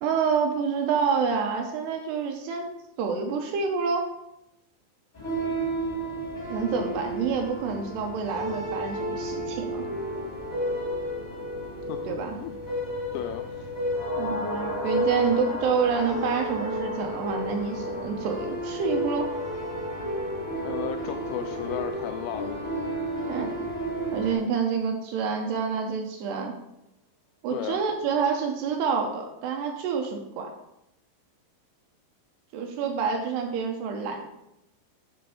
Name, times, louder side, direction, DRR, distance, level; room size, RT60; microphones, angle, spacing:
voice 1, 0.0-2.7 3.0-4.1 6.5-9.8 12.1-12.4 14.1-19.3 23.3-23.5 24.1-26.5 27.4-30.5 32.5-34.3, right 5 dB, 75° right, 3 dB, 2.5 m, -28 dB
sound 1, 5.1-24.3, equal, 45° left, 0.5 m, -32 dB
voice 2, 13.1-13.7 20.6-22.7 27.5-27.9, left 10 dB, 85° left, 6 dB, 2.4 m, -34 dB
sound 2, 13.9-22.4 22.7-22.8, left 2 dB, 70° left, 1.6 m, -38 dB
7.7 x 4.3 x 6.9 m, 0.86 s
omnidirectional pair, 5.3 m